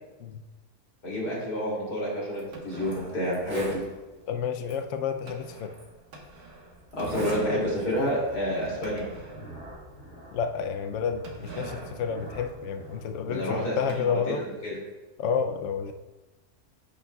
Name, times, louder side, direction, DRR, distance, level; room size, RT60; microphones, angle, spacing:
voice 1, 1.0-3.8 6.9-9.0 13.3-14.8, equal, 80° left, -5 dB, 3.4 m, -29 dB
Zipper (clothing), 2.3-2.4 2.9-3.0 3.3-3.8 4.7-4.8 5.7-5.8 6.9-7.4 7.8-8.1, right 1 dB, 50° right, 2.2 m, -38 dB
sound 1, 2.5-9.8 10.2-10.3 10.5-10.6 11.2-14.0, right 3 dB, 80° right, 1.8 m, -45 dB
voice 2, 4.3-5.7 10.3-14.4 15.2-15.9, left 6 dB, 65° left, 7 dB, 0.8 m, -30 dB
sound 2, 5.9-14.4, right 1 dB, 10° right, 2.8 m, -48 dB
9.9 x 8.3 x 2.3 m, 1.1 s
omnidirectional pair, 1.6 m